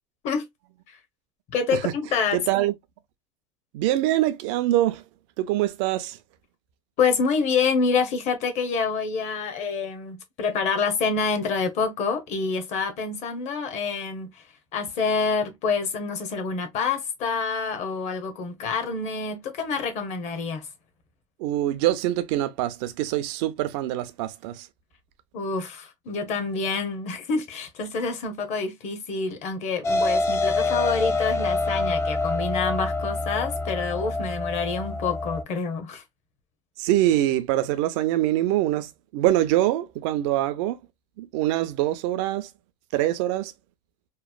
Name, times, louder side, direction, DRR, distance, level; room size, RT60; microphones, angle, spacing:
voice 1, 1.5-2.5 7.0-14.4 14.7-20.7 25.3-36.0, left 5 dB, 45° left, 0.8 m, -27 dB
voice 2, 2.3-2.7 3.7-5.0 5.4-6.2 21.4-24.7 36.8-40.8 41.2-42.5 42.9-43.5, right 14 dB, 65° right, 0.5 m, -24 dB
sound 1, 29.8-35.4, left 3 dB, 15° left, 0.3 m, -26 dB
3.0 x 2.0 x 2.2 m
supercardioid pair, 125°, 17 cm